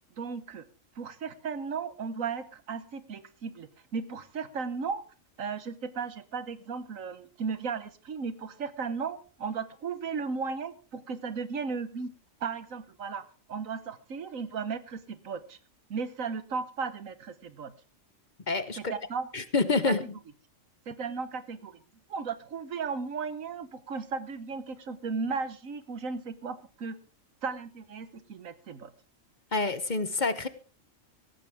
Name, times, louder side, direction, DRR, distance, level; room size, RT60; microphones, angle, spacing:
voice 1, 0.2-0.6 1.0-5.0 5.4-12.1 12.4-15.6 15.9-17.7 18.8-19.3 19.8-20.1 20.9-21.8 22.1-27.0 27.4-28.9, right 5 dB, 85° right, 13 dB, 1.6 m, -35 dB
voice 2, 18.5-18.9 19.3-20.1 29.5-30.5, left 3 dB, 40° left, 13 dB, 1.0 m, -27 dB
17.5 x 14.5 x 3.5 m, 0.35 s
omnidirectional pair, 1.4 m